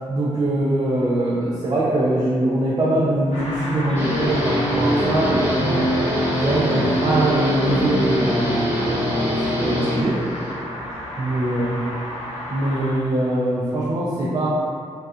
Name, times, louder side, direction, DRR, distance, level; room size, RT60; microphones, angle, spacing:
voice 1, 0.1-5.9 6.3-9.2 9.5-10.2 11.2-11.8 12.5-14.5, right 1 dB, 35° right, -6 dB, 0.4 m, -22 dB
sound 1, 3.3-12.9, left 1 dB, 85° left, 0.8 m, -32 dB
Guitar, 4.0-10.5, equal, 20° right, 0.8 m, -23 dB
2.7 x 2.2 x 3.5 m, 2.2 s
wide cardioid pair, 120°, 12 cm